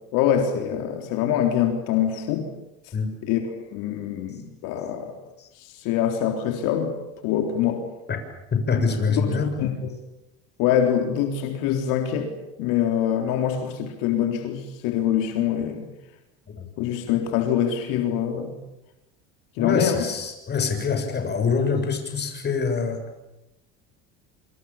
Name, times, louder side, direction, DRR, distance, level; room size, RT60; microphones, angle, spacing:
voice 1, 0.1-2.5 3.2-3.4 3.7-5.1 5.6-7.0 7.2-7.8 9.1-9.2 9.6-9.7 10.6-12.3 12.6-15.9 16.8-18.6 19.6-20.0, left 9 dB, 75° left, 4 dB, 3.8 m, -24 dB
voice 2, 8.5-9.5 16.6-16.7 19.6-23.0, left 5 dB, 30° left, 6 dB, 7.0 m, -25 dB
28.0 x 26.5 x 7.3 m, 0.90 s
supercardioid pair, 115°, 33 cm